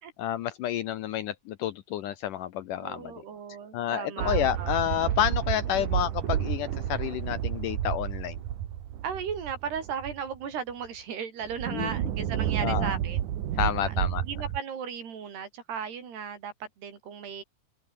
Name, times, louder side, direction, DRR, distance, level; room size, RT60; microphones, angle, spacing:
voice 1, 0.2-3.2 3.7-8.4 11.7-11.9 12.6-13.0 13.6-14.2, left 11 dB, 75° left, 2.1 m, -30 dB
voice 2, 2.8-4.8 5.8-5.9 9.0-13.2 13.8-17.4, right 7 dB, 85° right, 6.1 m, -36 dB
sound 1, 4.2-10.4 10.9-11.0 11.4-14.6, right 11 dB, 60° right, 2.7 m, -30 dB
omnidirectional pair, 4.6 m